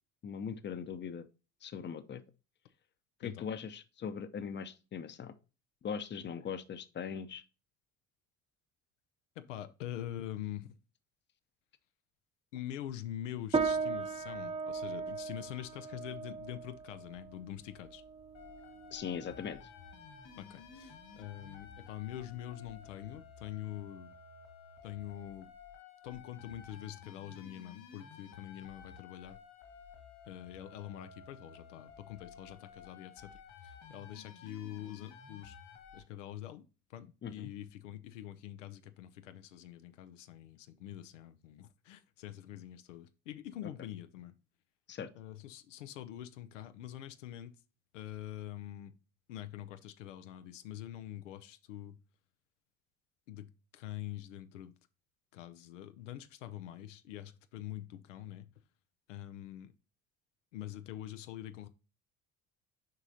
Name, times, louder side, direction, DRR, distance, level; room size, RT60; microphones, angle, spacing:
voice 1, 0.2-1.3 1.6-2.2 3.2-5.3 5.8-7.4 18.9-19.6 37.2-37.5 44.9-45.1, left 7 dB, 30° left, 0.7 m, -40 dB
voice 2, 9.4-10.8 12.5-18.0 20.4-24.1 24.8-25.5 26.0-29.4 30.3-33.3 33.6-35.6 35.9-36.6 36.9-44.3 45.2-47.5 47.9-49.0 49.3-52.0 53.3-54.7 55.3-58.5 59.1-59.7 60.5-61.7, left 12 dB, 90° left, 0.5 m, -45 dB
sound 1, 13.5-23.2, right 4 dB, 15° right, 0.7 m, -39 dB
sound 2, 18.3-36.0, left 6 dB, 70° left, 2.1 m, -54 dB
7.5 x 4.9 x 2.7 m
hypercardioid pair, 65°, 36 cm